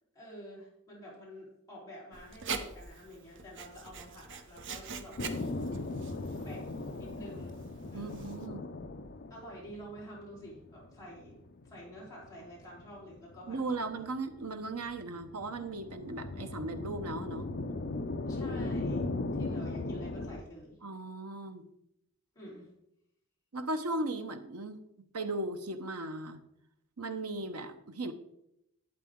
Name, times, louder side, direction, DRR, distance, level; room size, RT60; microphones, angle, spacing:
voice 1, 0.1-5.2 6.4-7.6 7.9-8.3 9.3-14.1 18.3-19.1 19.3-20.8 22.3-22.7, equal, 15° left, -7 dB, 3.8 m, -49 dB
Writing, 2.1-8.5, right 5 dB, 55° right, 0.8 m, -44 dB
sound 1, 5.2-20.4, left 2 dB, 45° left, 0.6 m, -38 dB
voice 2, 7.9-8.6 13.5-17.5 20.8-21.7 23.5-24.8 25.1-26.4 27.0-28.1, right 2 dB, 85° right, 8 dB, 1.0 m, -37 dB
11.5 x 8.2 x 3.7 m, 0.81 s
head